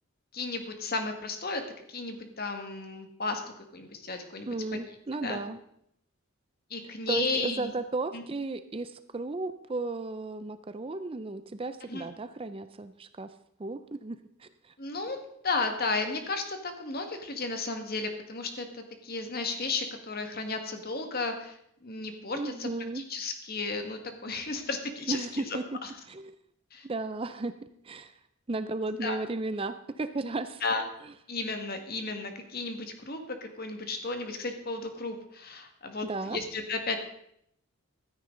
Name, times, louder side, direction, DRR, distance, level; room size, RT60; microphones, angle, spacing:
voice 1, 0.3-1.6 1.9-3.4 3.7-4.5 5.2-5.4 6.7-7.7 8.1-8.2 11.9-12.0 14.8-15.2 15.4-21.6 21.8-22.7 22.9-25.9 26.7-26.8 29.0-29.2 30.6-30.8 31.3-37.0, left 3 dB, 45° left, 6 dB, 1.7 m, -34 dB
voice 2, 4.5-5.6 6.8-13.3 13.6-14.5 22.3-23.0 25.1-25.6 26.1-26.4 26.8-27.5 27.8-28.1 28.5-30.6 31.0-31.1 36.0-36.4, right 3 dB, 25° right, 11 dB, 0.5 m, -34 dB
15.0 x 13.0 x 3.9 m, 0.72 s
head